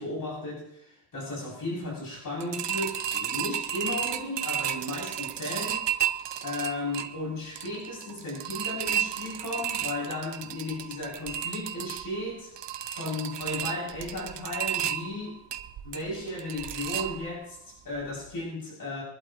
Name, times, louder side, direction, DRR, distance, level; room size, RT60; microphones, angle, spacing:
voice 1, 0.0-5.9 6.4-12.5 12.9-15.4 15.8-19.0, left 2 dB, 50° left, -5 dB, 6.9 m, -35 dB
sound 1, 2.4-17.6 17.9-18.0 18.4-18.5, right 10 dB, 80° right, 0.9 m, -33 dB
24.0 x 11.5 x 3.0 m, 0.75 s
wide cardioid pair, 150°, 41 cm